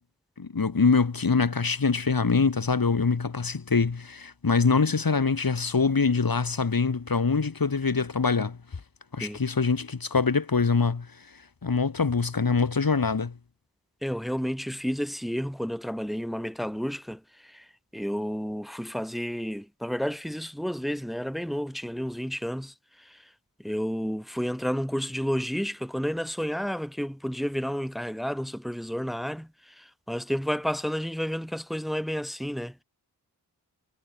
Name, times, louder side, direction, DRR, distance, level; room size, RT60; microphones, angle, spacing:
voice 1, 0.4-8.6 9.1-11.1 11.6-13.3, left 4 dB, 60° left, 4.8 m, -24 dB
voice 2, 14.0-23.3 23.6-32.8, equal, ahead, 3.2 m, -31 dB
cardioid pair, 45°, 38 cm